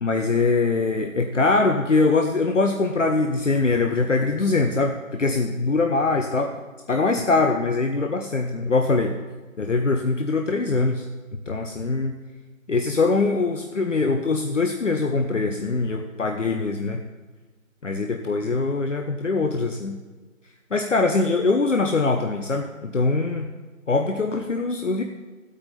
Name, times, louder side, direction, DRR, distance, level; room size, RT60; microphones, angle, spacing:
voice 1, 0.0-6.6 6.9-9.1 9.6-11.1 11.5-12.2 12.7-17.0 17.8-20.0 20.7-23.5 23.9-25.0, left 3 dB, 60° left, 4 dB, 1.0 m, -22 dB
15.0 x 8.7 x 4.3 m, 1.3 s
figure-of-eight pair, 155°, 41 cm